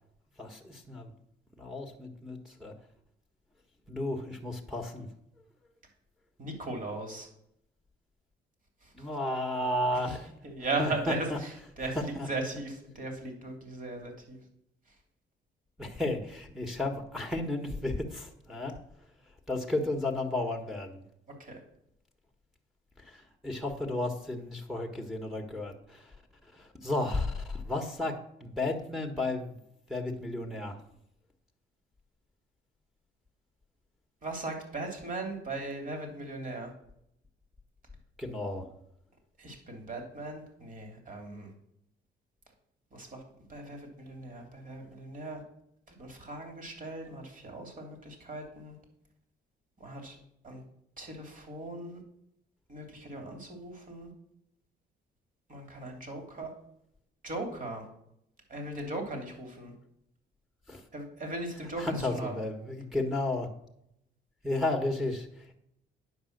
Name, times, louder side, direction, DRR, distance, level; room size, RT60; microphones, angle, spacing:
voice 1, 0.4-1.1 1.6-2.7 3.9-5.1 9.0-10.2 10.8-11.4 11.9-12.3 15.8-18.8 19.5-21.0 23.1-23.2 23.4-26.1 26.5-29.5 29.9-30.8 38.2-38.6 60.7-60.8 61.8-63.5 64.4-65.3, left 2 dB, ahead, 0 dB, 1.4 m, -33 dB
voice 2, 6.4-7.3 9.0-9.1 10.1-10.2 10.4-14.4 21.4-21.5 34.2-36.7 39.4-41.5 42.9-43.2 43.5-45.4 46.0-48.7 49.8-50.2 50.4-50.6 51.0-52.0 52.7-54.1 55.5-56.5 57.2-57.8 58.5-59.7 60.9-62.4, right 2 dB, 40° right, 3 dB, 3.0 m, -38 dB
9.6 x 5.3 x 6.6 m, 0.76 s
cardioid pair, 90°, 20 cm